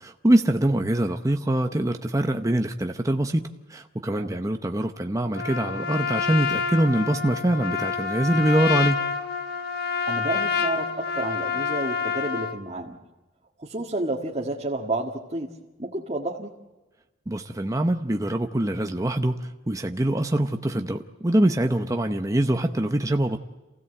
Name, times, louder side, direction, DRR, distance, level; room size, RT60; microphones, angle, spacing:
voice 1, 0.0-9.0 17.3-23.4, right 1 dB, 15° right, 5 dB, 0.8 m, -24 dB
Trumpet, 5.3-12.6, left 6 dB, 55° left, 1.5 m, -28 dB
voice 2, 10.1-13.0 13.6-15.5 15.8-16.6, right 2 dB, 30° right, -1 dB, 1.8 m, -30 dB
28.0 x 16.5 x 7.9 m, 1.1 s
head